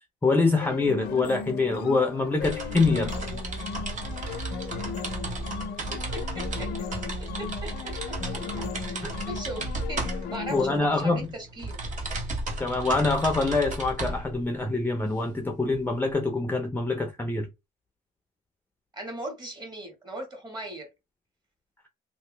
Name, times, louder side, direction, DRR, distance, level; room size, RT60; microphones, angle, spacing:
voice 1, 0.2-3.1 10.5-11.3 12.6-17.5, left 3 dB, 10° left, 0.5 m, -25 dB
sound 1, 0.6-10.8, left 6 dB, 70° left, 0.5 m, -37 dB
sound 2, 2.4-16.1, right 2 dB, 50° right, 1.2 m, -34 dB
voice 2, 5.9-6.9 7.4-11.8 18.9-20.9, right 1 dB, 25° right, 1.7 m, -39 dB
2.9 x 2.5 x 3.2 m
cardioid pair, 110°, 17 cm